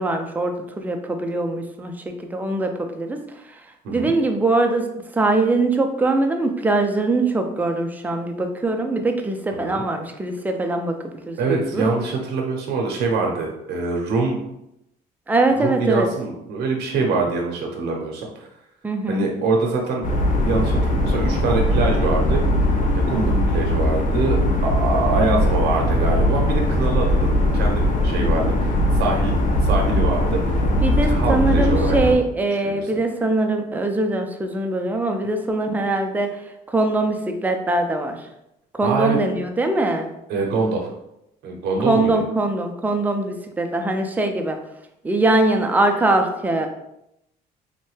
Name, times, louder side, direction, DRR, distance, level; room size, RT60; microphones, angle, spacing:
voice 1, 0.0-3.2 3.9-4.9 5.1-11.0 11.3-11.8 15.3-16.1 18.8-19.3 30.8-36.4 36.7-38.2 38.7-40.1 41.8-44.6 45.0-46.7, right 2 dB, 10° right, 4 dB, 0.4 m, -22 dB
voice 2, 9.5-9.8 11.4-14.4 15.6-18.5 19.1-20.1 20.4-22.4 23.1-30.6 31.0-32.0 32.6-32.9 38.8-39.2 40.3-40.9 41.4-42.2, right 3 dB, 75° right, 0 dB, 0.7 m, -24 dB
sound 1, 20.0-32.1, left 1 dB, 50° left, 0.5 m, -20 dB
3.1 x 2.1 x 3.1 m, 0.82 s
cardioid pair, 110°, 17 cm